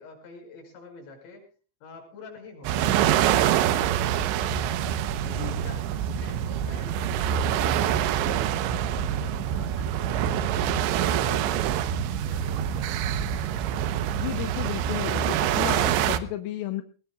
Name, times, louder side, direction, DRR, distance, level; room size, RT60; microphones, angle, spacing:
voice 1, 0.0-1.5 1.8-5.1 5.5-14.2, left 3 dB, 60° left, 2 dB, 7.9 m, -47 dB
sound 1, 2.6-16.2, right 10 dB, 75° right, 2.9 m, -25 dB
voice 2, 5.2-5.6 14.2-16.8, left 14 dB, 85° left, 8 dB, 3.5 m, -33 dB
22.0 x 19.5 x 2.3 m, 0.37 s
omnidirectional pair, 5.9 m